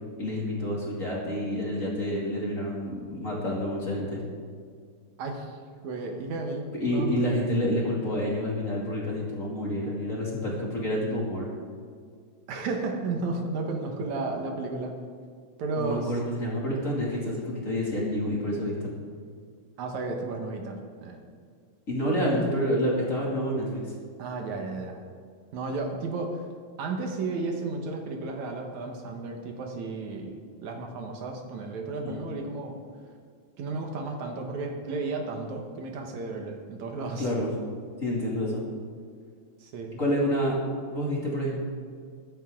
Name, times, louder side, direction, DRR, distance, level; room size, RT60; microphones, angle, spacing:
voice 1, 0.2-4.2 6.7-11.5 15.8-18.9 21.9-23.8 32.0-32.2 37.2-37.5 38.0-38.6 39.9-40.6 40.9-41.6, equal, 25° left, -5 dB, 2.7 m, -28 dB
voice 2, 5.2-5.6 5.8-7.1 12.5-14.9 15.6-16.1 19.8-21.2 24.2-25.0 25.5-26.4 26.8-32.8 33.6-37.3 39.6-39.9, right 3 dB, 70° right, 3 dB, 2.6 m, -33 dB
22.0 x 9.3 x 3.8 m, 2.1 s
omnidirectional pair, 3.5 m